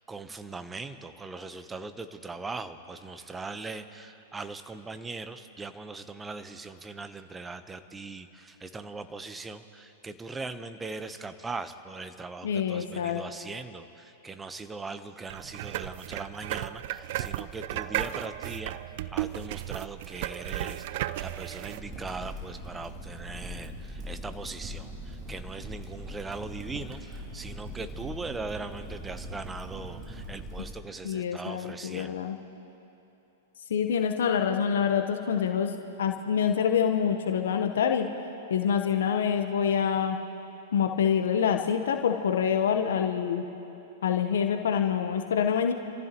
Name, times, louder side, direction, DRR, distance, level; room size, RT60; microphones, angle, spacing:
voice 1, 0.1-18.8 19.1-32.2, right 3 dB, 15° right, 10 dB, 0.9 m, -40 dB
voice 2, 12.4-13.2 31.0-32.4 33.7-35.7 36.0-38.1 38.5-40.2 40.7-43.4 44.0-45.7, left 7 dB, 70° left, 5 dB, 1.0 m, -26 dB
sound 1, 15.3-21.8, right 14 dB, 55° right, 0.5 m, -34 dB
Crackle, 21.7-30.7, equal, 30° right, 3.4 m, -41 dB
29.0 x 14.5 x 3.0 m, 2.9 s
hypercardioid pair, 105°, 0 cm